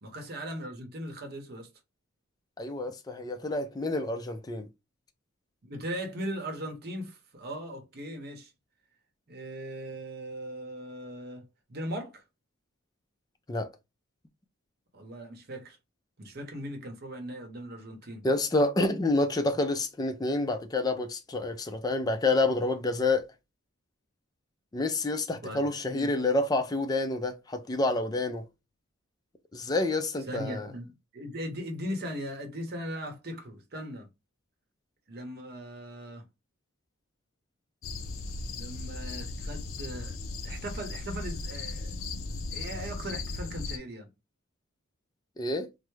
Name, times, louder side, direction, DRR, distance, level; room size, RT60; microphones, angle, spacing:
voice 1, 0.0-1.7 5.6-8.5 9.3-12.2 14.9-15.8 16.2-18.3 25.4-26.1 30.3-34.1 35.1-36.3 38.6-41.9 42.5-44.1, equal, 50° right, 0.8 m, -39 dB
voice 2, 2.6-4.7 13.5-13.7 18.2-23.3 24.7-28.4 29.5-30.7 45.4-45.7, left 2 dB, 20° left, 0.3 m, -28 dB
sound 1, 37.8-43.8, left 3 dB, 80° left, 0.5 m, -37 dB
3.3 x 2.0 x 3.1 m
head